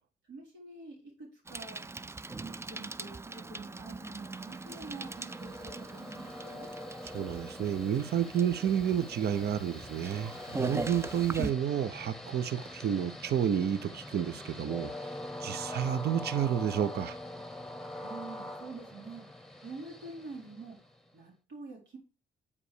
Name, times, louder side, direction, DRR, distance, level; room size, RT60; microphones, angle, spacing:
voice 1, 0.2-1.8 2.4-6.7 18.0-19.2 19.6-20.8 21.1-22.0, right 3 dB, 75° right, 3.9 m, -46 dB
Bicycle, 1.5-11.5, right 3 dB, 15° right, 0.4 m, -41 dB
Train, 4.3-21.1, left 1 dB, ahead, 1.0 m, -44 dB
voice 2, 7.1-14.9 15.4-17.2, right 9 dB, 55° right, 0.7 m, -30 dB
8.4 x 4.9 x 4.9 m
supercardioid pair, 65°, 20 cm